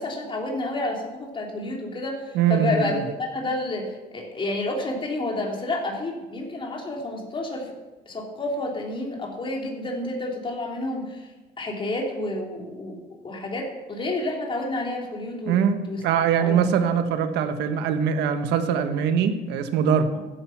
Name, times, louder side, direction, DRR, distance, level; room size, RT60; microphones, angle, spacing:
voice 1, 0.0-7.7 8.1-11.3 11.6-16.0 16.4-16.9, left 2 dB, 30° left, 0 dB, 3.6 m, -30 dB
voice 2, 2.3-3.0 15.5-20.1, right 7 dB, 85° right, 8 dB, 1.4 m, -22 dB
15.0 x 11.0 x 6.0 m, 1.1 s
cardioid pair, 110°, 17 cm